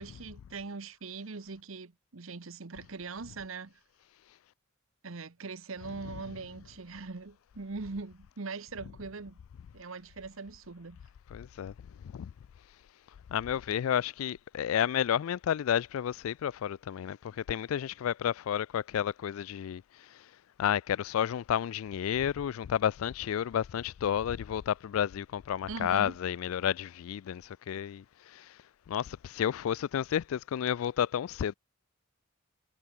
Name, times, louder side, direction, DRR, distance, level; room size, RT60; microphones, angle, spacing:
voice 1, 0.0-3.8 5.0-9.4 9.7-11.0 25.7-26.2, right 4 dB, 70° right, 1.0 m, -41 dB
voice 2, 11.3-12.3 13.3-20.3 20.6-28.6 28.9-31.5, left 9 dB, 80° left, 0.3 m, -31 dB
head